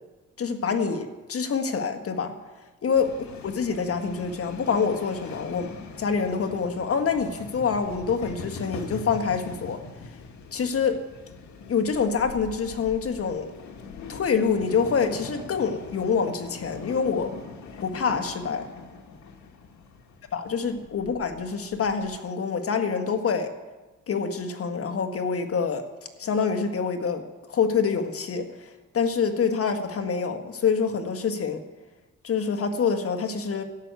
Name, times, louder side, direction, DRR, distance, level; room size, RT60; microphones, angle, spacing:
voice 1, 0.4-2.4 2.8-3.2 3.4-10.2 10.5-11.0 11.7-13.5 14.1-17.3 17.8-18.7 20.3-23.5 24.1-25.9 26.2-31.6 32.2-33.6, left 5 dB, 50° left, 7 dB, 1.6 m, -26 dB
sound 1, 2.9-22.2, left 4 dB, 70° left, 1.9 m, -42 dB
13.0 x 8.0 x 9.4 m, 1.2 s
cardioid pair, 90°, 30 cm